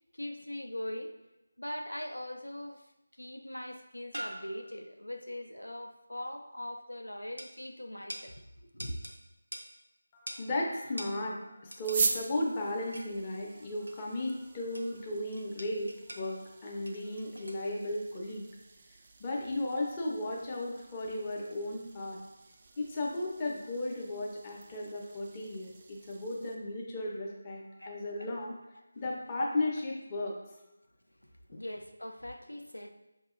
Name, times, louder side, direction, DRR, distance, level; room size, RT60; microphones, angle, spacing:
voice 1, 0.1-1.1 1.6-2.9 3.2-8.4 8.7-9.0 27.8-27.9 28.2-28.3 29.4-29.6 31.2-32.9, left 1 dB, 85° left, 5 dB, 0.5 m, -41 dB
sound 1, 1.9-2.4 3.5-3.6 4.1-5.0 7.4-7.5 8.1-8.3 8.8-9.2 9.5-9.7 10.3-10.5 11.0-11.2 11.7-12.2 12.9-13.2 13.9-14.1 14.7-15.1 15.3-16.3 16.9-17.7 18.1-18.2, equal, 80° right, 0.5 m, -44 dB
voice 2, 10.1-18.5 19.2-22.2 22.8-28.6 29.0-30.4 31.5-31.6, left 1 dB, 20° left, -3 dB, 0.6 m, -35 dB
sound 2, 11.8-26.5, right 4 dB, 30° right, 0.3 m, -42 dB
5.9 x 2.7 x 2.5 m, 0.96 s
figure-of-eight pair, 160°, 0 cm